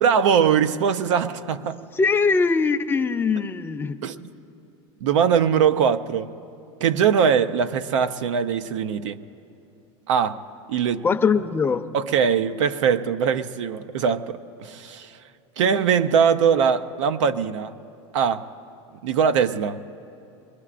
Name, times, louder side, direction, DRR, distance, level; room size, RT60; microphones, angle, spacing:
voice 1, 0.0-1.8 4.0-4.3 5.0-6.3 6.8-9.2 10.1-10.4 10.7-11.1 11.9-15.1 15.6-17.7 18.1-18.5 19.0-19.8, right 7 dB, 80° right, 0.6 m, -21 dB
voice 2, 1.9-4.0 11.0-11.9, left 5 dB, 15° left, 0.6 m, -21 dB
23.0 x 20.0 x 2.5 m
supercardioid pair, 120°, 15 cm